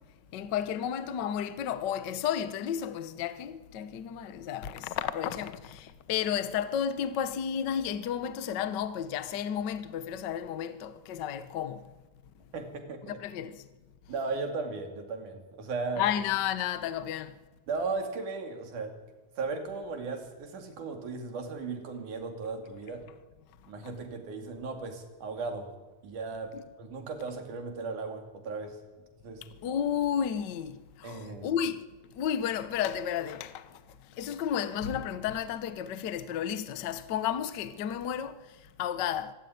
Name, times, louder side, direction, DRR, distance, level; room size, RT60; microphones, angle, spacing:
voice 1, 0.3-11.8 13.2-13.6 16.0-17.3 26.5-26.6 29.6-31.8 32.2-33.6 34.2-38.4 38.8-39.3, left 9 dB, 80° left, 0.9 m, -32 dB
voice 2, 12.5-13.2 14.1-16.0 17.7-19.0 19.4-23.0 23.7-25.7 26.0-28.8 29.2-29.4 31.0-31.5, right 4 dB, 85° right, 4.1 m, -36 dB
25.0 x 12.0 x 9.5 m
omnidirectional pair, 3.5 m